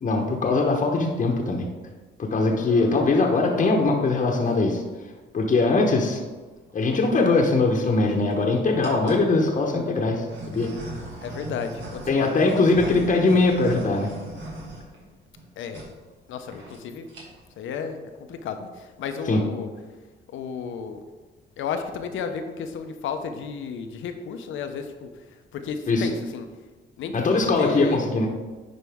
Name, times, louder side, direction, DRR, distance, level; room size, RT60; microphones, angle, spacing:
voice 1, 0.0-1.7 2.2-4.8 5.3-6.2 6.7-10.7 12.1-14.1 19.3-19.4 25.9-26.1 27.1-28.3, left 3 dB, 40° left, 0 dB, 1.0 m, -21 dB
voice 2, 2.6-3.3 11.2-12.3 12.8-13.0 15.6-15.8 16.3-17.1 17.6-19.7 20.3-21.0 21.6-25.1 25.5-26.5 27.0-28.0, left 6 dB, 80° left, 7 dB, 0.8 m, -33 dB
sound 1, 6.7-7.1 7.8-8.3 8.8-9.3 10.0-15.4 15.7-15.9 16.2-16.3 16.5-16.8 17.0-17.5, right 1 dB, 75° right, 2.3 m, -39 dB
10.5 x 4.5 x 3.6 m, 1.3 s
cardioid pair, 90°, 20 cm